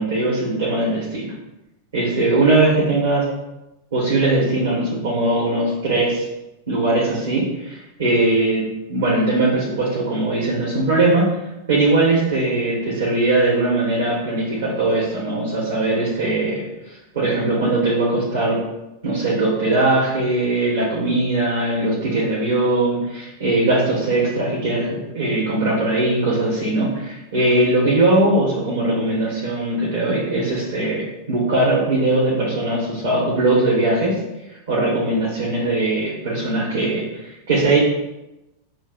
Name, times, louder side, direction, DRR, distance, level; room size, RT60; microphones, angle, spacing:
voice 1, 0.0-1.3 1.9-3.3 3.9-6.2 6.7-11.3 11.7-16.6 16.9-18.6 19.0-34.1 34.7-37.8, right 2 dB, 65° right, -6 dB, 1.3 m, -20 dB
7.0 x 2.7 x 2.4 m, 0.93 s
figure-of-eight pair, 90°, 0 cm